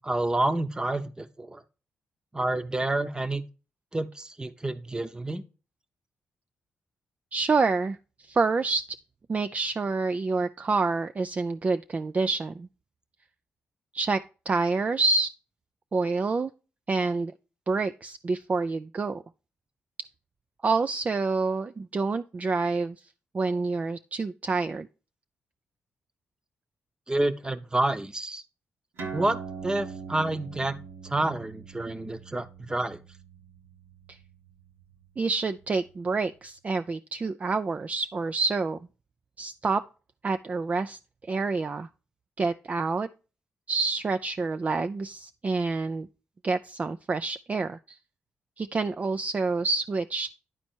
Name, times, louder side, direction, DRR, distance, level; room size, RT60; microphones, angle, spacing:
voice 1, 0.0-1.6 2.3-3.4 3.9-5.4 27.1-28.4 29.1-30.8 31.0-33.0, right 2 dB, 20° right, 0.8 m, -29 dB
voice 2, 7.3-8.9 9.3-12.7 13.9-14.2 14.5-15.3 15.9-16.5 16.9-17.3 17.7-19.2 20.6-23.0 23.3-24.9 34.1-34.2 35.2-38.8 39.4-39.8 40.2-41.0 41.3-41.9 42.4-43.1 43.7-46.1 46.4-48.0 48.6-50.4, right 3 dB, 35° right, 0.4 m, -27 dB
sound 1, 29.0-35.9, right 5 dB, 85° right, 1.6 m, -43 dB
10.5 x 4.3 x 4.4 m
cardioid pair, 65°, 4 cm